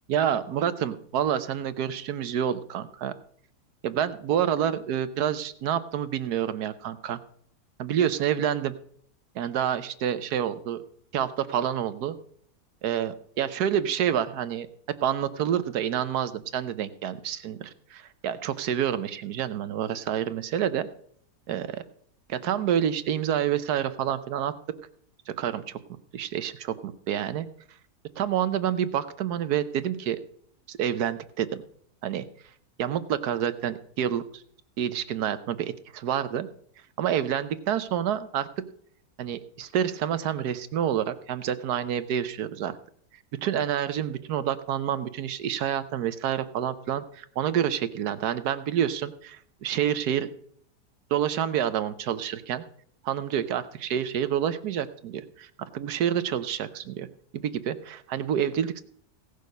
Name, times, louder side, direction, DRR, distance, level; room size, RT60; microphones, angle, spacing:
voice 1, 0.1-3.1 3.8-7.2 7.8-8.7 9.3-10.8 11.1-12.1 12.8-20.9 21.5-21.8 22.3-24.5 25.3-25.8 26.1-27.5 28.2-30.2 30.7-31.6 32.0-32.2 32.8-34.4 34.8-36.5 37.0-38.5 39.2-42.8 43.4-50.3 51.1-52.6 53.0-57.1 57.3-58.8, right 9 dB, 75° right, 12 dB, 1.4 m, -28 dB
17.0 x 6.6 x 5.2 m, 0.63 s
omnidirectional pair, 1.7 m